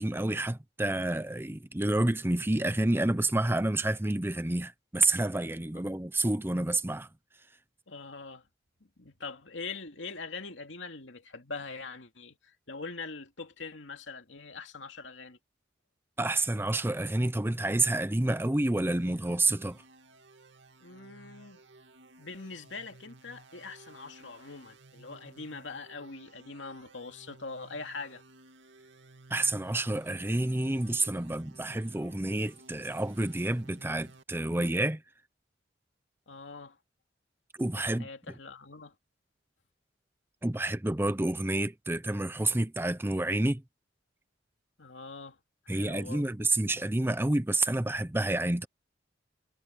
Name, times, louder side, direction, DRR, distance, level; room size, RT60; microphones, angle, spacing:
voice 1, 0.0-7.1 16.2-19.8 29.3-35.0 37.6-38.1 40.4-43.6 45.7-48.7, right 2 dB, 10° right, 0.7 m, -29 dB
voice 2, 7.9-8.5 8.8-15.4 20.8-21.6 22.2-28.2 36.3-36.8 37.7-38.9 44.8-45.4 45.6-46.4, left 4 dB, 90° left, 2.5 m, -43 dB
sound 1, 18.9-34.2, right 3 dB, 80° right, 2.4 m, -56 dB
head